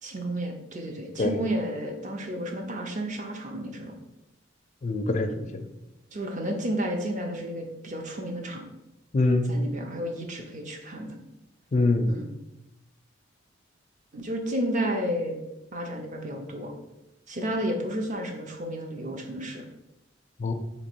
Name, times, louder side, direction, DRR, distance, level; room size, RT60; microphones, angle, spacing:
voice 1, 0.0-4.0 6.1-8.7 9.5-11.2 12.1-12.3 14.1-15.4 15.7-16.7 17.3-19.7, equal, 40° right, 3 dB, 0.6 m, -32 dB
voice 2, 4.8-5.7 9.1-9.5 11.7-12.1 20.4-20.5, left 2 dB, 35° left, 7 dB, 0.4 m, -24 dB
3.0 x 3.0 x 4.4 m, 0.92 s
head